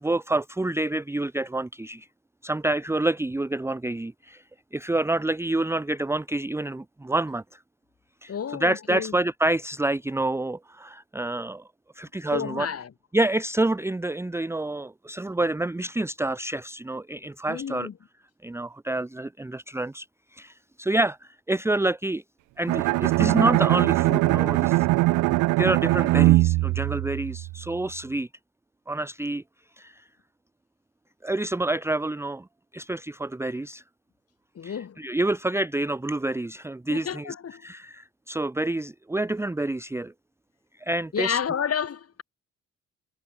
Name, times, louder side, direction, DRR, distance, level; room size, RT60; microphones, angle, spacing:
voice 1, 0.0-2.1 2.4-4.4 4.7-7.6 8.2-11.6 11.9-12.7 13.1-17.9 18.4-20.1 20.3-22.2 22.6-24.9 25.6-28.3 28.9-29.4 29.8-30.0 31.2-32.5 32.7-33.8 34.6-37.3 37.6-40.1 40.8-41.4, right 2 dB, 10° right, 0.8 m, -28 dB
voice 2, 8.3-9.2 12.3-12.9 17.5-17.9 34.5-35.0 36.9-37.7 41.1-42.2, left 7 dB, 50° left, 6.5 m, -30 dB
Bowed string instrument, 22.7-27.7, right 20 dB, 85° right, 0.5 m, -21 dB
cardioid pair, 90°, 30 cm